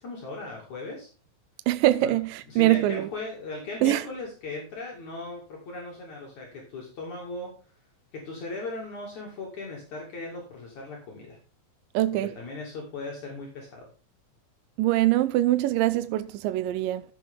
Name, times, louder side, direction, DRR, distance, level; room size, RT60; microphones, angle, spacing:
voice 1, 0.0-1.1 2.0-2.2 2.5-7.6 8.1-11.4 12.2-13.9, left 2 dB, 55° left, 3.6 m, -38 dB
voice 2, 1.7-3.1 3.8-4.0 11.9-12.3 14.8-17.0, right 15 dB, 80° right, 2.1 m, -23 dB
13.5 x 7.4 x 3.7 m
omnidirectional pair, 4.2 m